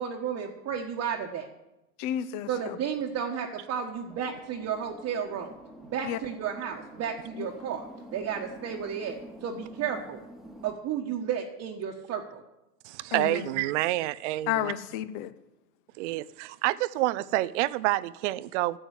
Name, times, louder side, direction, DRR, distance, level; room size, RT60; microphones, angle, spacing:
voice 1, 0.0-1.5 2.5-5.5 5.9-7.9 8.1-10.2 10.6-12.4, right 7 dB, 35° right, 1.3 m, -33 dB
voice 2, 2.0-2.8 6.0-6.2 7.4-7.5 13.1-13.6 14.5-15.3, left 11 dB, 45° left, 0.9 m, -32 dB
sound 1, 4.1-10.7, right 1 dB, ahead, 1.2 m, -47 dB
voice 3, 12.8-14.7 16.0-18.8, right 17 dB, 50° right, 0.6 m, -28 dB
11.0 x 7.8 x 8.2 m
hypercardioid pair, 115°, 45 cm